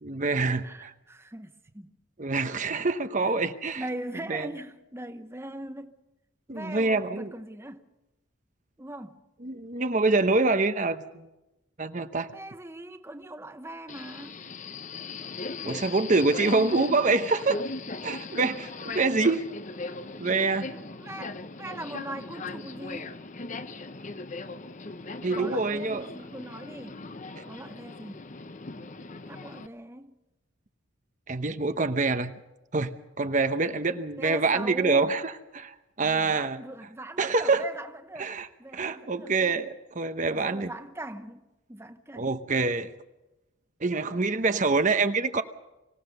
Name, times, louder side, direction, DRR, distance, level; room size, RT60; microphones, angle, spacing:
voice 1, 0.0-0.9 2.2-3.8 4.3-4.5 6.5-7.3 9.4-11.3 11.8-12.3 15.6-17.6 18.0-19.5 20.2-20.7 25.2-26.0 31.3-32.3 32.7-35.2 35.5-36.6 37.2-37.6 38.2-38.5 38.7-40.7 42.2-42.9 43.8-45.4, right 3 dB, 40° right, 0.9 m, -26 dB
voice 2, 0.6-1.9 3.2-3.3 3.8-6.0 6.5-7.9 8.8-9.2 12.3-14.4 20.7-23.2 25.2-27.0 27.4-28.3 29.3-30.2 34.2-35.2 36.0-39.6 40.3-41.4 41.7-42.3, right 1 dB, 10° right, 0.9 m, -41 dB
Subway metro underground, 13.9-29.7, left 3 dB, 35° left, 0.8 m, -39 dB
25.0 x 17.0 x 6.7 m
head